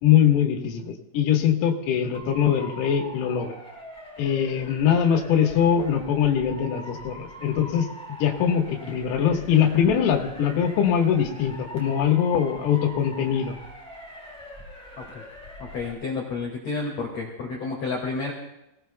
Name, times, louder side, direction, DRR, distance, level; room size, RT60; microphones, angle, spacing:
voice 1, 0.0-3.5 4.2-13.5, left 8 dB, 85° left, 2 dB, 4.2 m, -22 dB
Motor vehicle (road) / Siren, 2.1-15.9, equal, ahead, 3.5 m, -43 dB
voice 2, 15.6-18.3, left 4 dB, 50° left, -1 dB, 2.1 m, -30 dB
26.0 x 18.0 x 2.3 m, 0.89 s
omnidirectional pair, 6.0 m